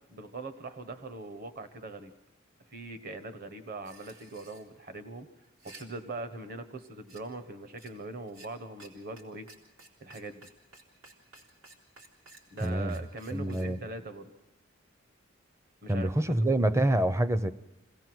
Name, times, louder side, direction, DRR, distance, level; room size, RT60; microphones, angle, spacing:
voice 1, 0.1-2.1 2.7-5.3 5.6-9.5 10.0-10.5 12.5-14.3 15.8-16.3, right 2 dB, 45° right, 10 dB, 1.3 m, -41 dB
sound 1, 3.8-4.6 5.4-5.8 7.1-7.2 7.8-7.9 8.3-8.5 8.8-8.9 9.2-9.3 9.5-13.7, right 3 dB, 85° right, 3.9 m, -53 dB
voice 2, 12.6-13.0 13.3-13.8 15.9-17.5, right 1 dB, 15° right, 13 dB, 0.6 m, -26 dB
26.0 x 17.5 x 6.2 m, 1.0 s
head